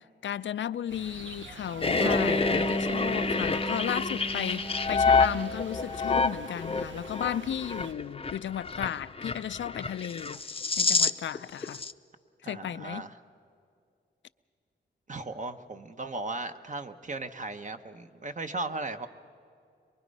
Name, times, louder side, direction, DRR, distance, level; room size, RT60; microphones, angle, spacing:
voice 1, 0.0-10.4 10.8-11.8 12.4-13.0, left 10 dB, 80° left, 0.4 m, -34 dB
sound 1, 0.9-7.9, right 3 dB, 80° right, 1.1 m, -47 dB
sound 2, 1.8-11.4 11.6-11.9, left 4 dB, 30° left, 0.6 m, -28 dB
Bass guitar, 2.0-6.1, equal, 5° right, 0.7 m, -34 dB
voice 2, 5.1-5.5 12.4-13.2 15.1-19.1, right 2 dB, 40° right, 1.0 m, -37 dB
23.5 x 23.0 x 5.4 m
wide cardioid pair, 80°, 19 cm